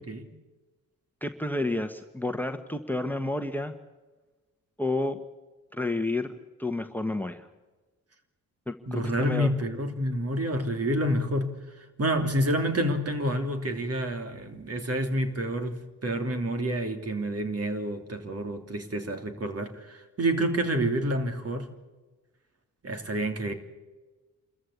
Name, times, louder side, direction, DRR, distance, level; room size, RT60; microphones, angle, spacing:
voice 1, 1.2-3.7 4.8-5.2 5.7-6.3 6.6-7.5 8.7-9.5, left 2 dB, 5° left, 9 dB, 1.4 m, -30 dB
voice 2, 8.9-11.6 12.0-15.7 16.0-21.7 22.8-23.5, right 1 dB, 45° right, 6 dB, 3.0 m, -28 dB
27.0 x 14.5 x 8.5 m, 1.2 s
cardioid pair, 70°, 34 cm